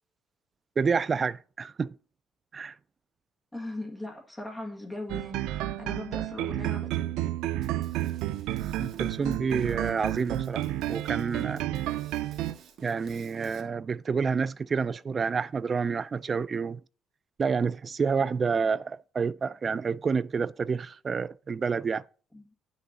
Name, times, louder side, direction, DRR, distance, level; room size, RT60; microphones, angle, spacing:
voice 1, 0.8-2.0 2.5-2.7 8.8-11.7 12.8-16.8 17.4-22.0, right 5 dB, 25° right, 0.3 m, -29 dB
voice 2, 3.5-7.2 22.3-22.5, left 1 dB, 10° left, 1.7 m, -39 dB
sound 1, 5.1-12.5, right 14 dB, 85° right, 0.4 m, -31 dB
Drum kit, 7.6-13.6, right 6 dB, 55° right, 1.5 m, -52 dB
9.8 x 6.3 x 4.1 m
cardioid pair, 165°, 0 cm